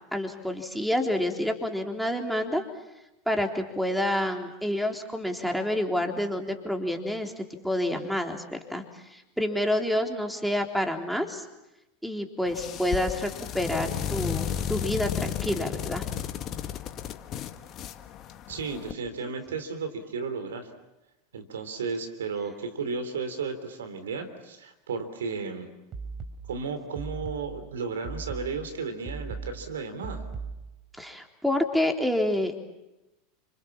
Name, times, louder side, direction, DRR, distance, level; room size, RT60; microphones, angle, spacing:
voice 1, 0.1-2.6 3.3-11.5 12.0-16.1 30.9-32.6, left 1 dB, ahead, 3 dB, 3.7 m, -28 dB
sound 1, 12.5-18.9, left 9 dB, 40° left, 1.9 m, -33 dB
voice 2, 18.5-20.7 21.3-25.7 26.5-30.2, right 5 dB, 80° right, 8 dB, 3.5 m, -34 dB
sound 2, 25.9-30.9, right 4 dB, 40° right, 4.6 m, -39 dB
30.0 x 26.5 x 7.4 m, 0.98 s
hypercardioid pair, 85°, 0 cm